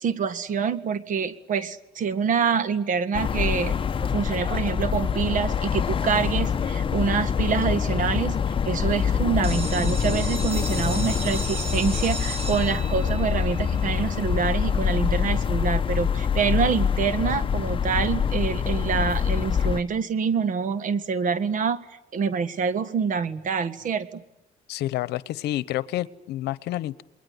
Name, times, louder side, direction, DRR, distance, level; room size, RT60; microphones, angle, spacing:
voice 1, 0.0-3.7 4.1-21.8 22.1-24.2, right 6 dB, 50° right, 13 dB, 1.7 m, -26 dB
sound 1, 3.1-19.8, left 7 dB, 30° left, 1.0 m, -25 dB
sound 2, 9.4-15.1, right 3 dB, 35° right, 4.4 m, -36 dB
voice 2, 24.7-27.0, left 15 dB, 80° left, 18 dB, 1.0 m, -29 dB
28.5 x 21.5 x 9.8 m, 0.87 s
cardioid pair, 110°, 17 cm